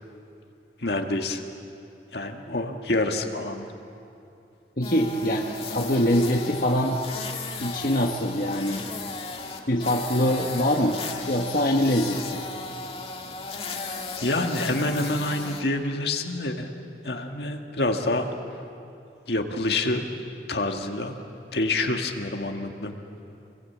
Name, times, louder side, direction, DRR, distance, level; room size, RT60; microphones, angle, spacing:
voice 1, 0.8-1.4 2.1-3.7 14.2-16.7 17.0-18.3 19.3-20.0 20.5-21.1 21.5-23.0, left 2 dB, 65° left, 4 dB, 1.9 m, -27 dB
voice 2, 4.8-7.0 7.6-8.8 9.7-11.0 11.3-12.4, equal, 50° left, 1 dB, 1.4 m, -24 dB
sound 1, 4.8-15.6, left 3 dB, 35° left, 2.0 m, -35 dB
28.0 x 22.0 x 8.7 m, 2.7 s
head